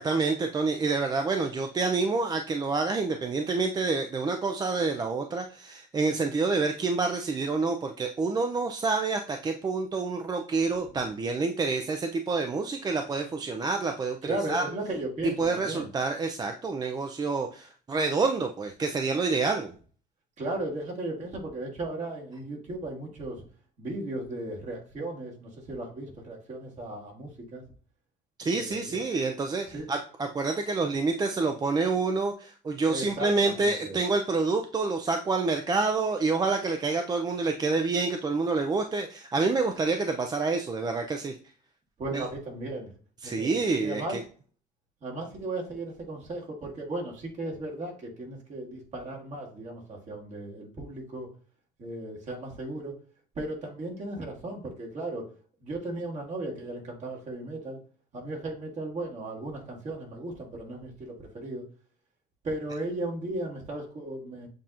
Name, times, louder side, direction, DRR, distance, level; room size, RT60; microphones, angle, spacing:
voice 1, 0.0-14.6 15.4-19.7 28.4-41.4 43.2-44.2, right 3 dB, 25° right, 5 dB, 0.4 m, -28 dB
voice 2, 14.2-15.9 20.4-23.4 23.8-27.6 28.5-29.1 29.7-29.9 32.8-34.0 42.0-42.9 43.2-44.2 45.0-51.3 51.8-52.9 53.4-55.3 55.6-57.8 58.1-61.7 62.4-64.5, right 2 dB, 45° right, -1 dB, 1.7 m, -36 dB
7.4 x 2.8 x 2.5 m, 0.41 s
cardioid pair, 110°, 17 cm